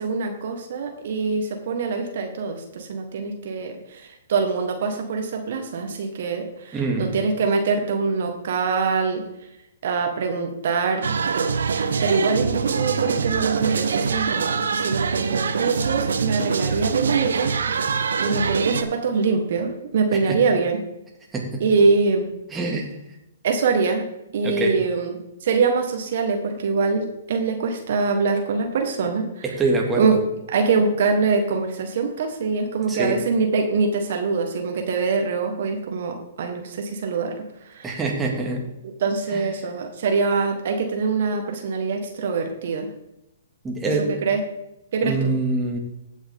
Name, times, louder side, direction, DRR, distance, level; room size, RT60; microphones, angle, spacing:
voice 1, 0.0-9.2 9.8-11.1 11.3-11.6 12.0-20.8 21.6-22.3 23.4-24.0 24.3-29.4 30.0-30.2 30.5-38.0 38.8-42.9 43.8-44.4 44.9-45.3, right 4 dB, 60° right, 4 dB, 1.6 m, -24 dB
voice 2, 6.7-7.2 20.3-20.4 21.3-21.6 22.5-22.9 24.4-24.7 29.4-30.2 32.9-33.2 37.8-38.7 39.3-39.5 43.6-44.1 45.0-45.8, right 2 dB, 15° right, -1 dB, 2.2 m, -24 dB
sound 1, 11.0-18.8, right 5 dB, 75° right, 0.9 m, -24 dB
15.5 x 6.2 x 3.7 m, 0.87 s
hypercardioid pair, 125°, 0 cm